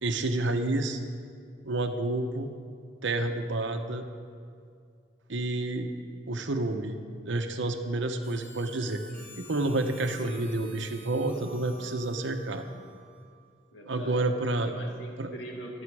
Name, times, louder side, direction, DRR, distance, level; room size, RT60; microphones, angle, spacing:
voice 1, 0.0-1.0 1.6-2.5 3.0-4.0 5.3-5.9 6.3-6.9 7.3-9.0 9.4-12.6 13.9-14.7 15.2-15.3, right 2 dB, 75° right, 6 dB, 1.0 m, -29 dB
Harmonica, 8.2-13.4, right 2 dB, 10° left, 3.8 m, -51 dB
voice 2, 13.7-15.8, equal, 80° left, 0 dB, 2.3 m, -43 dB
23.0 x 8.2 x 4.8 m, 2.3 s
head